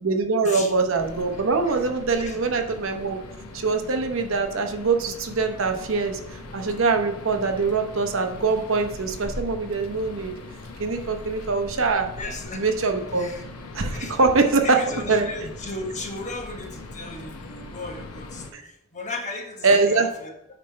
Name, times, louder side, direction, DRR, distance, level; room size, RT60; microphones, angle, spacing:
voice 1, 0.0-3.2 3.5-10.3 10.8-12.1 12.5-13.3 13.7-14.8 15.1-15.3 18.5-18.6 19.6-20.1, right 4 dB, 60° right, 5 dB, 0.8 m, -23 dB
sound 1, 1.0-18.5, left 2 dB, 90° left, 0.9 m, -40 dB
voice 2, 12.1-12.6 13.1-13.4 13.9-14.3 14.6-18.6 18.9-20.3, left 2 dB, 35° left, 2 dB, 1.1 m, -35 dB
9.2 x 3.3 x 5.5 m, 0.80 s
head